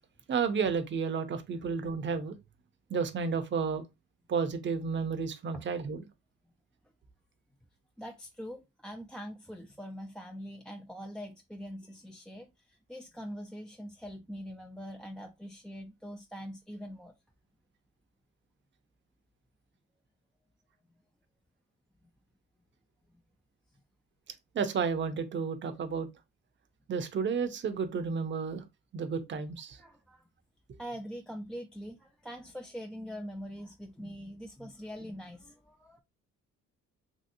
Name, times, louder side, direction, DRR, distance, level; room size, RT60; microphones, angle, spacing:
voice 1, 0.3-2.4 2.9-3.8 4.3-6.0 24.5-26.1 26.9-28.6 28.9-29.8, right 5 dB, 40° right, 0.6 m, -31 dB
voice 2, 8.0-17.1 29.8-30.3 30.8-36.0, equal, 5° left, 0.3 m, -43 dB
3.0 x 2.8 x 2.6 m
cardioid pair, 90°, 30 cm